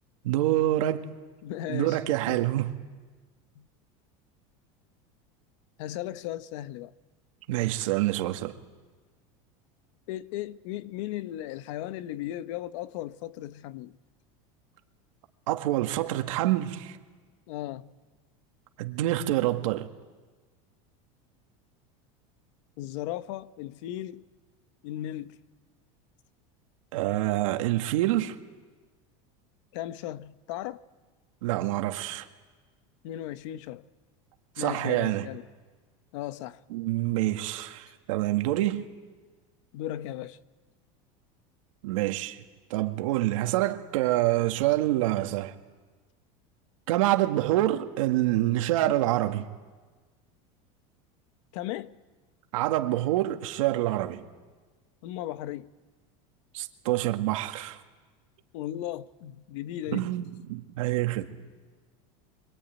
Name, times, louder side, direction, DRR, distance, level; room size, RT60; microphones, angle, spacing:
voice 1, 0.2-1.1 1.7-2.8 7.5-8.5 15.5-17.0 18.8-19.9 26.9-28.4 31.4-32.3 34.6-35.3 36.7-38.9 41.8-42.4 42.7-45.5 46.9-49.5 52.5-54.2 56.5-57.8 59.9-61.3, right 15 dB, 85° right, 1.9 m, -26 dB
voice 2, 1.4-2.0 2.3-2.4 3.6-3.7 5.8-6.9 10.1-13.9 17.5-17.9 22.8-24.2 24.8-25.4 29.7-30.8 33.0-33.9 34.6-35.4 36.1-36.6 39.7-40.4 51.5-52.0 55.0-55.7 58.5-60.1, left 13 dB, 65° left, 0.9 m, -36 dB
25.0 x 24.5 x 9.3 m
supercardioid pair, 160°, 17 cm